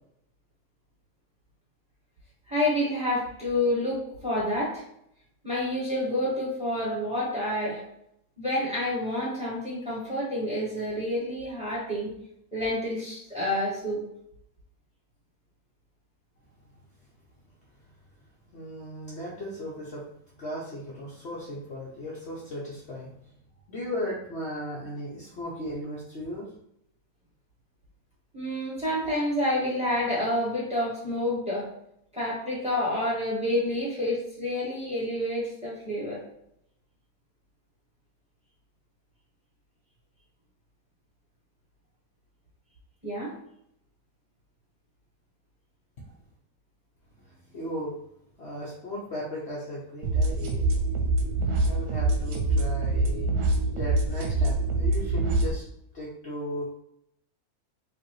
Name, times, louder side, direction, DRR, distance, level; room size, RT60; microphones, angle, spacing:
voice 1, 2.5-4.8 5.4-7.8 8.4-12.1 12.5-14.0 28.3-31.7 32.1-36.2 43.0-43.3, left 1 dB, 5° right, -6 dB, 1.5 m, -28 dB
voice 2, 18.5-20.0 20.4-23.2 23.7-26.5 47.2-47.9 48.4-53.3 53.7-55.6 55.9-56.8, equal, 50° left, -5 dB, 1.0 m, -37 dB
sound 1, 50.0-55.5, right 2 dB, 85° right, 1.2 m, -25 dB
4.9 x 2.6 x 3.1 m, 0.73 s
omnidirectional pair, 1.6 m